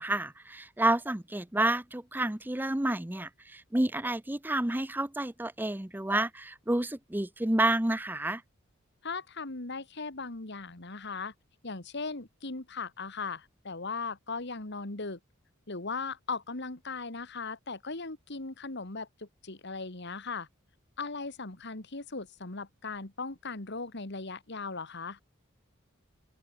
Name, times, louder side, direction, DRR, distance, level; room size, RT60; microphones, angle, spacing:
voice 1, 0.0-8.4, right 1 dB, 10° right, 0.7 m, -29 dB
voice 2, 9.0-11.3 11.6-15.2 15.7-20.5 21.0-25.2, left 4 dB, 55° left, 2.1 m, -38 dB
open air
head